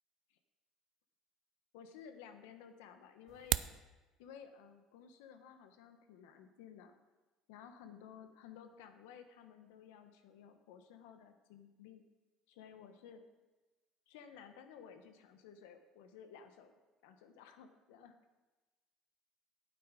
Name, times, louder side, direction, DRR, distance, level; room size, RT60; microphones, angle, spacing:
voice 1, 1.7-3.6 4.2-6.9 7.5-12.0 12.5-13.2 14.1-18.2, left 7 dB, 85° left, 8 dB, 0.9 m, -55 dB
sound 1, 3.3-3.8, right 12 dB, 60° right, 0.3 m, -35 dB
8.8 x 8.5 x 4.9 m, 1.2 s
supercardioid pair, 95°, 0 cm